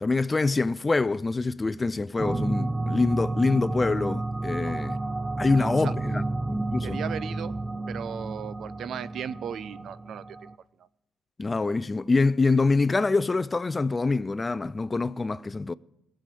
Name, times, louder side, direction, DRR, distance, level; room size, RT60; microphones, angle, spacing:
voice 1, 0.0-5.0 5.4-6.2 6.5-7.0 11.4-15.7, left 3 dB, 25° left, 0.4 m, -25 dB
sound 1, 2.2-10.6, right 2 dB, 20° right, 0.6 m, -31 dB
voice 2, 5.5-5.9 6.8-7.5 7.9-10.5, right 8 dB, 65° right, 0.6 m, -36 dB
17.5 x 7.7 x 8.3 m
cardioid pair, 90°, 0 cm